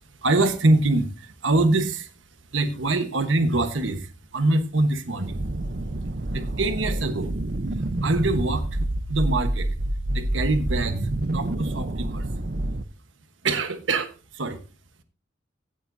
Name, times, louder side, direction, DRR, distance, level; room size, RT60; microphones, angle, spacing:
voice 1, 0.2-2.1 2.5-5.5 6.3-7.3 8.0-8.7 9.1-9.7 10.1-12.3 13.4-14.6, right 2 dB, 85° right, 8 dB, 1.2 m, -24 dB
sound 1, 5.2-12.8, right 1 dB, 50° right, 0.7 m, -28 dB
16.5 x 9.7 x 2.7 m, 0.33 s
head